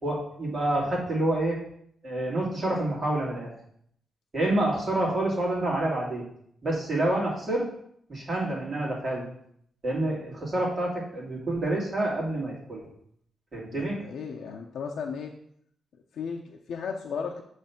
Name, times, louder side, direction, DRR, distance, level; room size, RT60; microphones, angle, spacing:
voice 1, 0.0-1.6 2.0-3.5 4.3-6.2 6.6-7.6 8.1-9.3 9.8-12.8 13.5-14.0, right 1 dB, 30° right, -4 dB, 2.3 m, -28 dB
voice 2, 13.7-15.3 16.1-17.4, left 6 dB, 75° left, 1 dB, 0.6 m, -35 dB
7.4 x 3.2 x 5.7 m, 0.67 s
wide cardioid pair, 160°, 0 cm